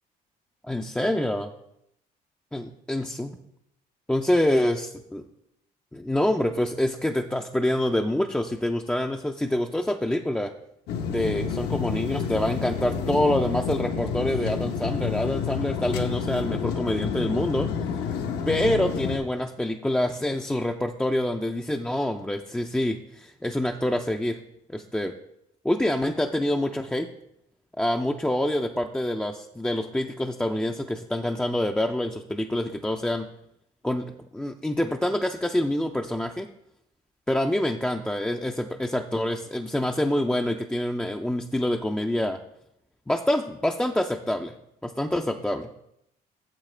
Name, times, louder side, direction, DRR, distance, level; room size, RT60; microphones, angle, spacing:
voice 1, 0.6-1.5 2.5-3.4 4.1-5.2 5.9-10.5 11.1-17.7 18.5-24.4 24.7-25.1 25.6-27.1 27.8-33.3 33.8-36.5 37.3-42.4 43.1-44.6 44.8-45.7, left 1 dB, 5° left, 3 dB, 0.4 m, -26 dB
sound 1, 10.9-19.2, left 6 dB, 75° left, 0.9 m, -29 dB
9.0 x 7.0 x 3.3 m, 0.80 s
cardioid pair, 110°, 17 cm